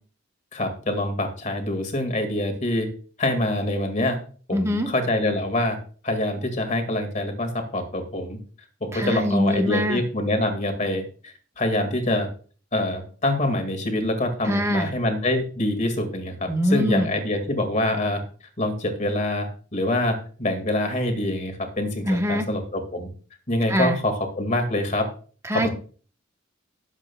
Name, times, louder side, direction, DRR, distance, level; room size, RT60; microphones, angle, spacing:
voice 1, 0.5-2.9 3.2-4.2 4.5-5.8 6.0-8.4 8.8-12.3 12.7-18.2 18.6-23.1 23.5-25.1 25.5-25.7, left 1 dB, 40° left, 6 dB, 1.9 m, -25 dB
voice 2, 4.5-4.9 8.9-10.0 14.4-14.9 16.5-17.1 22.1-22.5 23.7-24.0 25.4-25.7, equal, 15° right, 4 dB, 1.2 m, -23 dB
18.0 x 7.3 x 2.3 m, 0.41 s
head